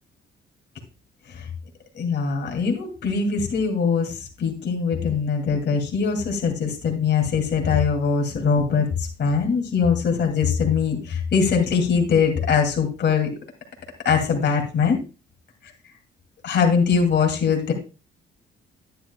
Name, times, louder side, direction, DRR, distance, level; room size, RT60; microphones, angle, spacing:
voice 1, 1.9-13.3 14.0-15.0 16.4-17.7, left 6 dB, 60° left, 2 dB, 2.6 m, -22 dB
10.5 x 10.0 x 2.3 m, 0.31 s
cardioid pair, 90°, 20 cm